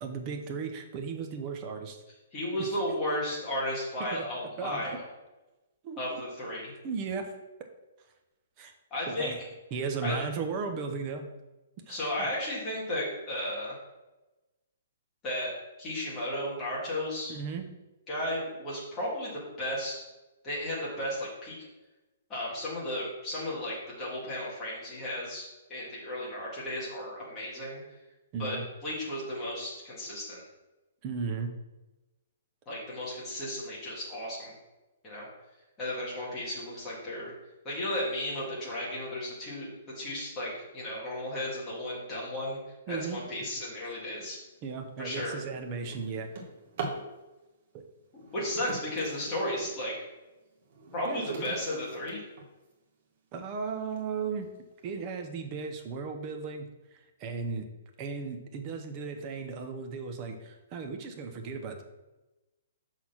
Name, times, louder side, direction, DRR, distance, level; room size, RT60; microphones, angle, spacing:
voice 1, 0.0-2.0 4.0-4.3 4.6-5.0 5.8-6.2 6.8-7.3 8.6-8.7 9.1-9.4 9.7-11.3 11.9-12.3 17.3-17.7 28.3-28.6 31.0-31.5 42.9-43.2 43.8-43.9 44.6-46.3 47.7-47.8 51.0-51.5 53.3-54.5 54.8-57.7 58.0-61.8, right 5 dB, 20° right, 5 dB, 0.7 m, -36 dB
voice 2, 2.3-5.0 6.0-6.7 8.9-9.3 10.0-10.2 11.9-13.8 15.2-15.5 15.8-17.3 18.1-20.0 20.4-21.6 22.3-27.8 28.4-30.4 32.7-34.5 35.0-35.3 35.8-37.3 37.6-42.6 42.9-44.4 45.0-45.4 48.1-49.9 50.9-52.2, left 1 dB, 15° left, -7 dB, 2.1 m, -34 dB
Drawer open or close, 44.4-44.6 45.1-47.1 48.2-49.8 50.3-52.7 53.4-53.5 54.0-54.1 54.4-54.8, right 4 dB, 40° right, 1.3 m, -41 dB
6.2 x 4.0 x 6.0 m, 1.1 s
hypercardioid pair, 175°, 0 cm